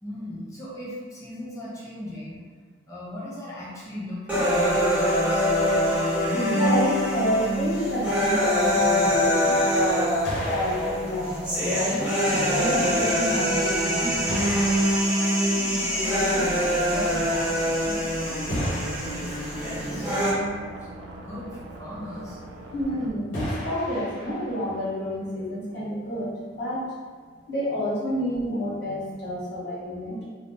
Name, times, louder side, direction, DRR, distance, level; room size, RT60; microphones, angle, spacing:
voice 1, 0.0-2.4 2.9-5.5 15.5-20.9 21.2-22.4 29.4-29.5, left 1 dB, 15° left, -8 dB, 0.6 m, -38 dB
sound 1, 4.3-20.3, equal, 5° right, 0.9 m, -24 dB
voice 2, 6.3-10.2 10.4-14.4 22.7-26.9 27.5-30.3, equal, 60° left, -9 dB, 1.2 m, -29 dB
sound 2, 10.2-12.4 13.4-13.5 14.3-16.5 18.5-20.1 23.3-24.9, equal, 80° left, 1.1 m, -35 dB
sound 3, 16.8-23.1, right 1 dB, 80° right, 0.4 m, -43 dB
2.5 x 2.2 x 3.5 m, 1.5 s
head